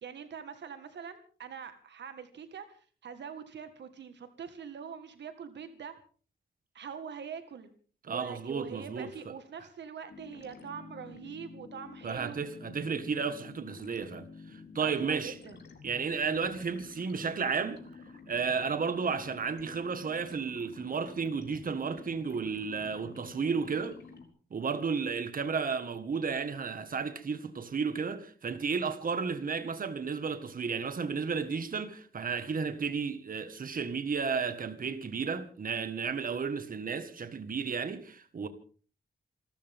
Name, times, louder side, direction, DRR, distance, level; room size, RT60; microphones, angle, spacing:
voice 1, 0.0-6.0 6.7-7.7 8.1-12.5 14.8-15.6, right 7 dB, 80° right, 1.7 m, -43 dB
voice 2, 8.1-9.1 12.0-15.3 15.8-17.8 18.3-24.0 24.5-38.5, right 5 dB, 50° right, 1.7 m, -33 dB
sound 1, 10.1-24.3, left 4 dB, 70° left, 4.1 m, -50 dB
28.5 x 13.5 x 3.7 m
cardioid pair, 90°, 18 cm